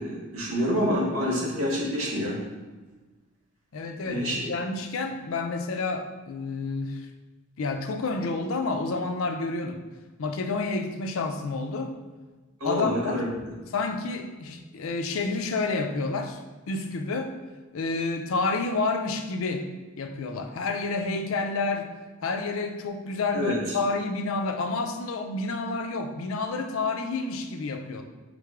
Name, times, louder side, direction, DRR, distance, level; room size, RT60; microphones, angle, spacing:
voice 1, 0.0-2.4 4.0-4.4 12.6-13.2 23.3-23.6, equal, 85° right, -3 dB, 1.3 m, -27 dB
voice 2, 3.7-7.1 7.6-9.8 10.2-12.0 12.6-13.2 13.7-16.4 16.7-17.4 17.7-19.7 20.0-21.9 22.2-28.0, left 3 dB, 75° left, 6 dB, 0.4 m, -29 dB
3.7 x 3.4 x 3.6 m, 1.3 s
head